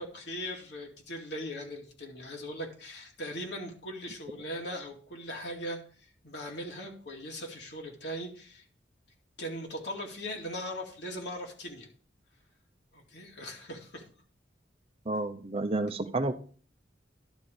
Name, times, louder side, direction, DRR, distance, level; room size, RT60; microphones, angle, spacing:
voice 1, 0.0-8.7 9.4-11.9 12.9-14.0, equal, 65° left, 1 dB, 2.2 m, -39 dB
voice 2, 15.1-16.3, right 2 dB, 30° right, 8 dB, 0.6 m, -30 dB
11.5 x 4.4 x 6.6 m, 0.42 s
head